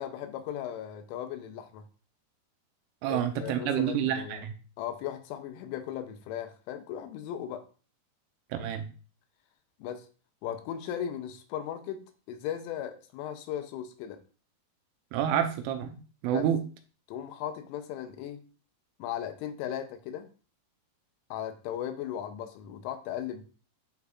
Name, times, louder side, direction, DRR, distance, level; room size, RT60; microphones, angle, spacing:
voice 1, 0.0-1.8 3.1-4.4 4.8-7.6 9.8-10.1 10.4-12.0 12.3-14.2 16.3-16.5 17.1-18.4 19.0-20.3 21.3-23.4, left 10 dB, 80° left, 7 dB, 3.2 m, -37 dB
voice 2, 3.0-4.5 8.5-8.9 15.1-16.0 16.2-16.6, right 9 dB, 80° right, 7 dB, 3.1 m, -28 dB
11.5 x 3.9 x 2.4 m, 0.37 s
omnidirectional pair, 5.8 m